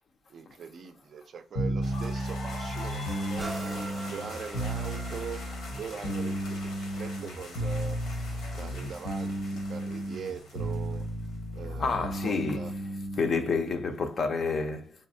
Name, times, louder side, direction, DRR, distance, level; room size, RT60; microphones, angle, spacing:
voice 1, 0.3-5.5 5.8-8.0 8.5-11.0 11.5-12.7 13.9-14.0, right 6 dB, 45° right, 0.4 m, -41 dB
sound 1, 1.5-13.4, right 1 dB, 65° left, 0.8 m, -34 dB
sound 2, 1.8-11.6, left 3 dB, 90° left, 1.4 m, -45 dB
sound 3, 3.4-11.0 11.6-11.7, right 2 dB, 10° right, 0.7 m, -46 dB
voice 2, 11.8-12.8 13.1-14.9, left 4 dB, 40° left, 0.5 m, -29 dB
4.1 x 3.1 x 2.6 m
cardioid pair, 175°, 0 cm